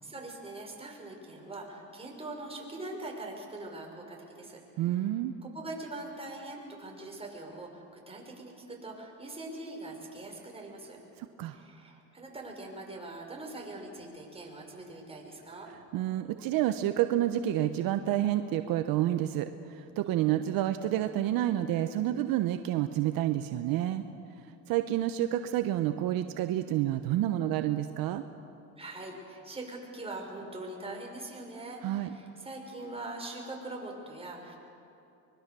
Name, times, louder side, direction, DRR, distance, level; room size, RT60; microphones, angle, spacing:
voice 1, 0.0-4.6 4.8-11.0 11.5-15.7 20.1-20.4 28.8-34.6, right 2 dB, 15° right, 0 dB, 5.7 m, -42 dB
voice 2, 4.8-5.3 11.2-11.6 15.9-24.0 24.7-28.2 31.8-32.1, right 13 dB, 70° right, 9 dB, 1.0 m, -29 dB
24.0 x 22.0 x 6.9 m, 2.7 s
supercardioid pair, 95°, 36 cm